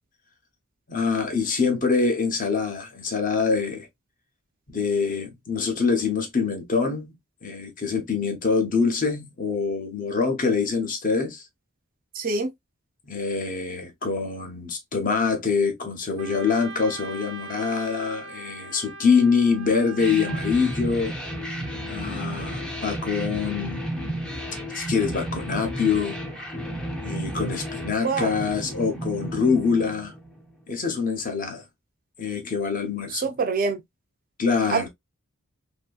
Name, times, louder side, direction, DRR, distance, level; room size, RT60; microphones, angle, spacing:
voice 1, 0.9-3.9 4.7-7.1 7.4-11.4 13.1-21.1 21.9-23.8 24.7-26.1 27.0-30.1 30.7-31.6 32.2-33.2 34.4-34.9, left 5 dB, 40° left, 0.7 m, -25 dB
voice 2, 12.1-12.5 28.0-28.3 33.1-33.8 34.7-34.9, right 4 dB, 40° right, 0.4 m, -25 dB
Wind instrument woodwind instrument, 16.2-20.8, right 3 dB, 85° right, 0.5 m, -40 dB
sound 1, 20.0-30.5, equal, 5° left, 0.5 m, -32 dB
2.7 x 2.6 x 2.2 m
head